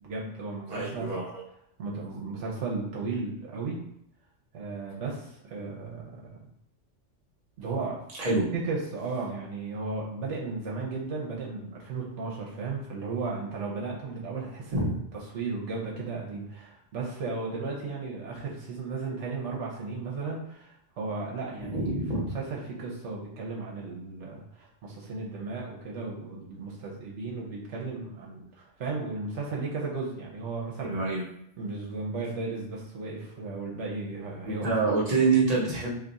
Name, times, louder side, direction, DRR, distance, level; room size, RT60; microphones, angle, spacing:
voice 1, 0.0-1.1 1.8-3.8 4.5-6.4 7.6-8.0 8.5-15.0 15.3-31.0 31.6-34.9, right 3 dB, 80° right, -3 dB, 1.1 m, -35 dB
voice 2, 0.7-1.4 8.2-8.5 14.7-14.9 21.7-22.3 30.9-31.2 34.6-35.9, right 3 dB, 35° right, -5 dB, 0.9 m, -26 dB
2.8 x 2.4 x 3.9 m, 0.74 s
omnidirectional pair, 1.2 m